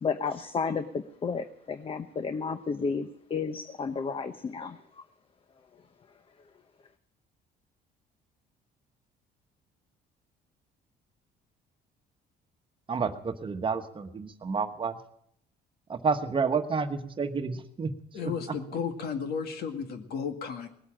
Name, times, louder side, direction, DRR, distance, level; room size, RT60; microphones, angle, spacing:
voice 1, 0.0-4.8, left 5 dB, 35° left, 10 dB, 0.9 m, -32 dB
voice 2, 12.9-15.0 15.9-17.9, right 5 dB, 30° right, 7 dB, 1.2 m, -30 dB
voice 3, 18.1-20.7, left 6 dB, 70° left, 6 dB, 2.0 m, -33 dB
19.0 x 8.3 x 8.8 m, 0.71 s
cardioid pair, 110°, 17 cm